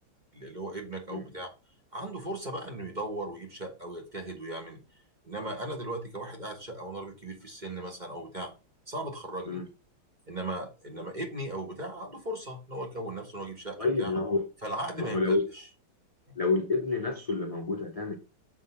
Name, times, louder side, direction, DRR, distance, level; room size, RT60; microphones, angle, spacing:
voice 1, 0.3-1.5 1.9-4.8 5.2-8.5 8.9-9.6 10.3-14.1 14.6-15.6 16.3-16.4, right 1 dB, 25° right, 1.2 m, -37 dB
voice 2, 13.8-14.5 15.0-15.5 16.4-18.2, left 3 dB, 35° left, 0.5 m, -28 dB
7.2 x 3.8 x 5.5 m
omnidirectional pair, 2.3 m